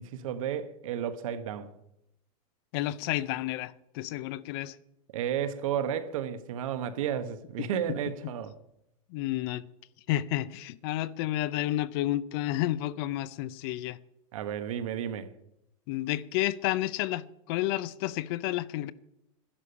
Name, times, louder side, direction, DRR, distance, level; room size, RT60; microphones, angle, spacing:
voice 1, 0.0-1.7 5.1-8.5 14.3-15.3, right 9 dB, 75° right, 1.3 m, -32 dB
voice 2, 2.7-4.8 7.6-7.7 9.1-9.6 10.1-14.0 15.9-18.9, left 15 dB, 45° left, 0.6 m, -31 dB
12.5 x 11.0 x 7.0 m
supercardioid pair, 165°, 17 cm